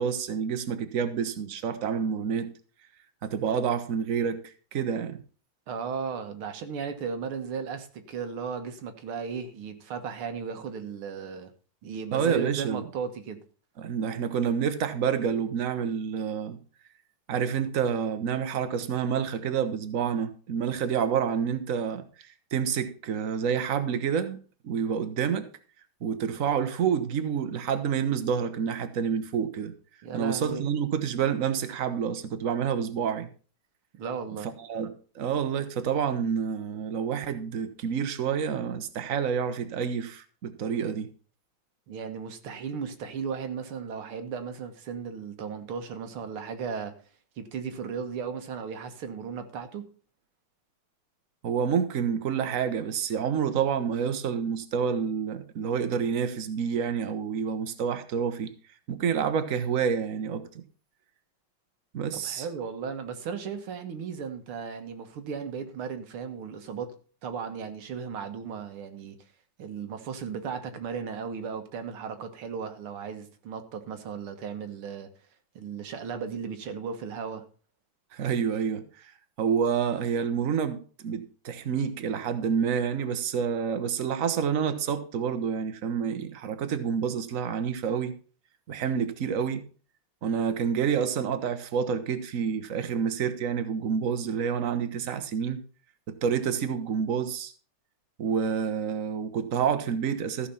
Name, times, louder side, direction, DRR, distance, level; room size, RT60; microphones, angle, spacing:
voice 1, 0.0-2.5 3.2-4.4 4.7-5.2 12.1-12.9 13.8-16.6 17.3-22.0 22.5-24.4 24.6-25.5 26.0-29.7 30.1-33.3 34.6-41.1 51.4-58.5 58.9-60.6 61.9-62.5 78.1-78.9 79.4-88.1 88.7-89.6 90.2-95.6 96.1-97.5 98.2-100.5, right 7 dB, 45° right, 1.3 m, -28 dB
voice 2, 5.7-11.5 11.8-13.4 30.0-30.7 33.9-34.5 41.9-46.9 47.4-49.9 62.1-67.0 67.2-69.2 69.6-75.1 75.6-77.4, right 6 dB, 80° right, 2.2 m, -36 dB
14.5 x 5.7 x 5.5 m
omnidirectional pair, 2.3 m